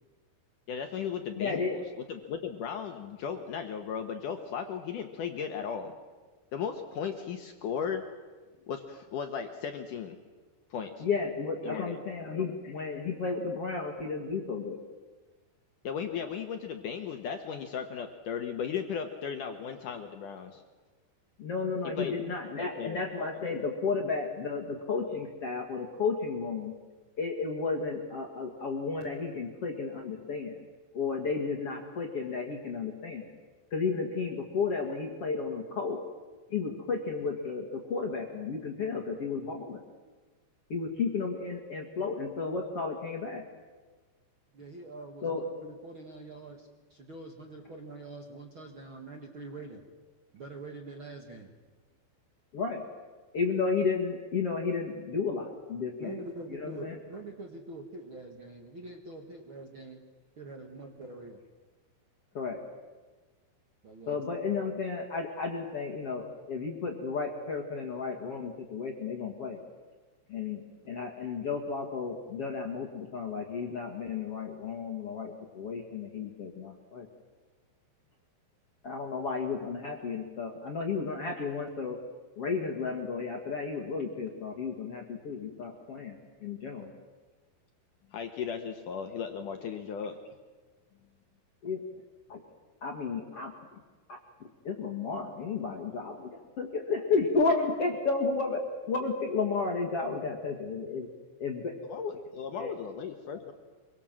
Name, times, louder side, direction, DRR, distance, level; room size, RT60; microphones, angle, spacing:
voice 1, 0.7-5.9 6.5-8.0 8.7-10.2 10.7-11.1 11.6-12.7 15.8-20.6 21.8-22.2 22.6-23.2 88.1-90.2 101.9-103.5, left 7 dB, 75° left, 6 dB, 1.9 m, -36 dB
voice 2, 1.3-1.8 11.0-14.8 21.4-26.7 27.2-30.6 30.9-33.3 33.7-36.0 36.5-39.8 40.7-43.4 45.2-45.4 52.5-52.8 53.3-56.2 56.5-57.0 62.3-62.6 64.1-69.6 70.3-77.1 78.8-82.0 82.4-86.9 91.6-91.8 92.3-92.4 92.8-93.5 94.1-94.2 94.6-96.3 96.6-98.6 98.9-101.1 101.4-101.7 102.6-102.7, left 4 dB, 50° left, 1 dB, 1.9 m, -33 dB
voice 3, 44.5-49.8 50.3-51.5 56.0-60.0 60.4-61.4 63.8-64.2, right 2 dB, 55° right, 3 dB, 1.4 m, -44 dB
26.0 x 23.5 x 7.6 m, 1.3 s
omnidirectional pair, 5.5 m